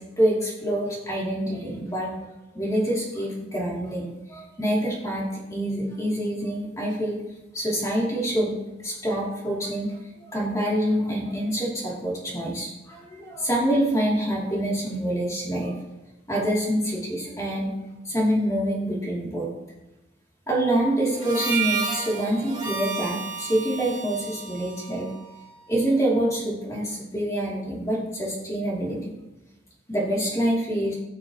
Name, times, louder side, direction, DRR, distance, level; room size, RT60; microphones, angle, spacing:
voice 1, 0.0-2.1 2.5-7.2 7.5-10.0 10.3-15.7 16.3-17.8 18.0-19.5 20.5-25.1 25.7-29.1 29.9-31.0, right 1 dB, 15° left, -5 dB, 2.8 m, -26 dB
Harmonica, 21.1-25.7, right 5 dB, 20° right, 1.6 m, -32 dB
18.5 x 6.5 x 3.0 m, 1.0 s
head